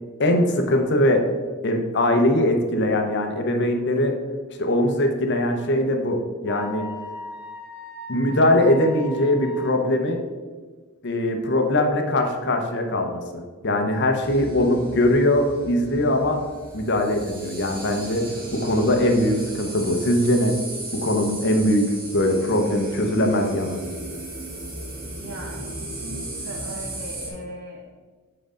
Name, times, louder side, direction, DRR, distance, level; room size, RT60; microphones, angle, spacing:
voice 1, 0.2-1.2 1.6-4.1 4.6-6.2 6.4-6.8 8.1-10.2 11.0-16.4 16.7-18.2 18.5-20.6 21.0-23.8, left 1 dB, 55° left, 4 dB, 0.8 m, -21 dB
Wind instrument woodwind instrument, 6.5-9.9, left 2 dB, 10° right, 1.5 m, -38 dB
sound 1, 14.2-27.3, right 1 dB, 40° right, 1.7 m, -36 dB
voice 2, 25.2-27.8, right 1 dB, 85° right, 0 dB, 1.0 m, -38 dB
7.8 x 3.8 x 5.0 m, 1.4 s
head